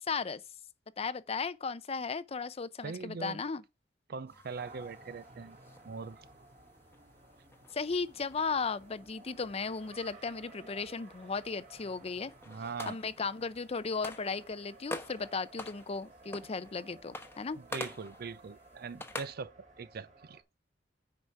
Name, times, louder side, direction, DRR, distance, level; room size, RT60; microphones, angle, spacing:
voice 1, 0.1-0.4 1.0-3.6 7.7-12.3 12.9-17.6, left 4 dB, 35° left, 0.5 m, -36 dB
voice 2, 2.8-3.4 4.1-5.6 5.8-6.2 12.5-13.0 17.5-20.4, right 5 dB, 55° right, 0.5 m, -41 dB
sound 1, 4.3-19.3, left 2 dB, 15° left, 1.0 m, -48 dB
Race car auto racing, 4.6-20.4, right 2 dB, 40° right, 1.7 m, -56 dB
9.7 x 4.9 x 4.6 m
head